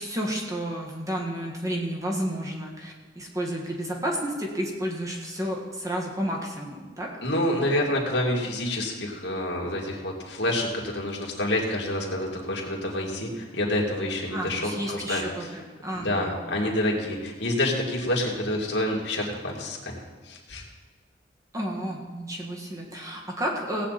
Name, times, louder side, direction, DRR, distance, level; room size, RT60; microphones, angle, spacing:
voice 1, 0.0-7.1 14.3-16.3 21.5-23.9, equal, 20° right, -2 dB, 1.7 m, -31 dB
voice 2, 7.2-15.2 15.9-19.9 20.3-20.6, left 1 dB, 70° left, -2 dB, 2.5 m, -28 dB
17.0 x 8.7 x 4.2 m, 1.4 s
head